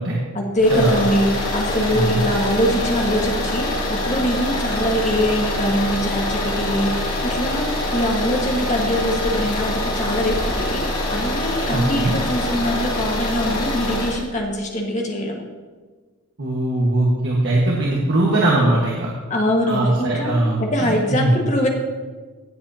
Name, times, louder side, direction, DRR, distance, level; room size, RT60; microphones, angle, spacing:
voice 1, 0.3-15.4 19.3-21.7, equal, 35° left, 0 dB, 1.6 m, -23 dB
sound 1, 0.6-14.2, left 1 dB, 80° left, 2.7 m, -24 dB
voice 2, 11.7-12.1 16.4-19.1 19.7-21.4, right 1 dB, 55° right, -3 dB, 1.5 m, -20 dB
16.5 x 7.7 x 2.8 m, 1.4 s
head